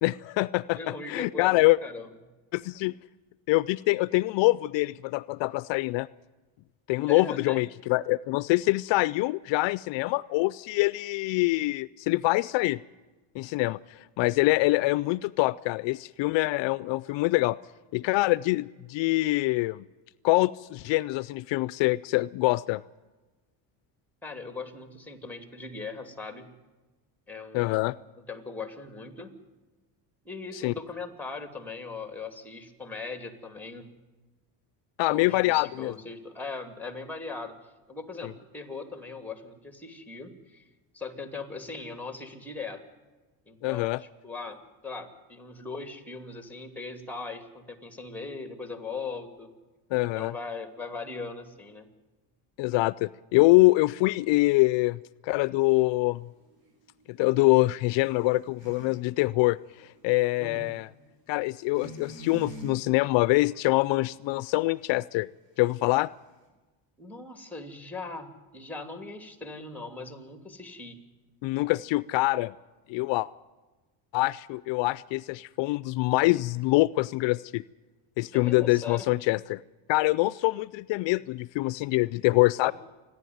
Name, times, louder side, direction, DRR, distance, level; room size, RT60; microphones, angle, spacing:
voice 1, 0.0-1.8 2.5-3.0 3.5-6.1 6.9-12.8 13.3-17.6 17.9-19.8 20.2-22.8 27.5-27.9 30.5-30.7 35.0-35.9 38.2-38.3 43.6-44.0 49.9-50.3 52.6-56.3 57.1-60.9 61.3-65.3 65.6-66.1 71.4-72.5 72.9-73.3 74.1-77.6 78.2-79.6 79.9-82.7, left 21 dB, 70° left, 19 dB, 0.6 m, -25 dB
voice 2, 0.7-2.1 7.1-7.6 24.2-26.5 27.3-28.0 28.3-29.3 30.2-33.9 35.0-37.5 37.9-40.7 40.9-42.8 43.5-49.5 50.1-51.9 60.4-60.7 67.0-71.0 78.3-79.1 82.6-82.7, left 4 dB, 5° left, 8 dB, 2.8 m, -39 dB
sound 1, 55.9-59.0 59.4-60.7 61.6-62.8 63.0-63.6 63.9-64.2, right 2 dB, 55° right, 6.8 m, -45 dB
27.5 x 11.0 x 9.4 m, 1.2 s
cardioid pair, 110°, 45 cm